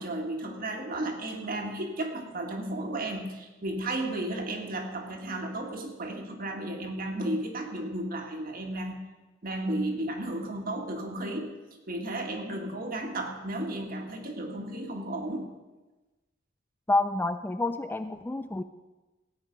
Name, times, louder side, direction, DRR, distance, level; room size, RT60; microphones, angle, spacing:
voice 1, 0.0-9.0 9.4-11.5 11.9-15.5, right 1 dB, 50° right, 3 dB, 1.8 m, -33 dB
voice 2, 16.9-18.6, left 2 dB, 10° left, 9 dB, 0.4 m, -28 dB
16.5 x 9.2 x 5.2 m, 1.1 s
head